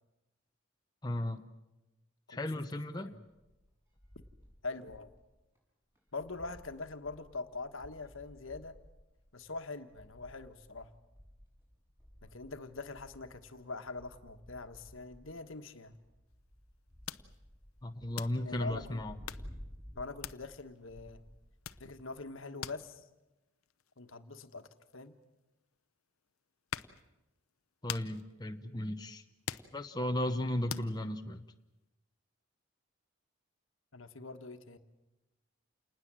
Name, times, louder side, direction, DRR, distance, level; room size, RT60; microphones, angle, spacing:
voice 1, 1.0-1.4 2.3-3.1 17.8-19.2 27.8-29.2 29.7-31.4, left 1 dB, 20° left, 5 dB, 0.8 m, -35 dB
sound 1, 3.3-5.2 5.6-5.7 6.0-22.2, equal, 10° right, 7.1 m, -55 dB
voice 2, 4.6-5.1 6.1-8.8 9.3-10.9 12.2-15.9 18.4-19.0 19.9-21.2 21.8-23.0 24.0-25.2 33.9-34.8, left 3 dB, 70° left, 8 dB, 1.4 m, -43 dB
sound 2, 16.3-16.4 16.7-16.8 17.0-17.7 18.1-18.7 19.1-19.6 20.2-20.8 21.2-21.4 21.6-25.8 26.3-27.1 27.5-30.2 30.7-31.0, left 9 dB, 85° left, 0.8 m, -44 dB
28.5 x 20.0 x 7.6 m, 1.0 s
head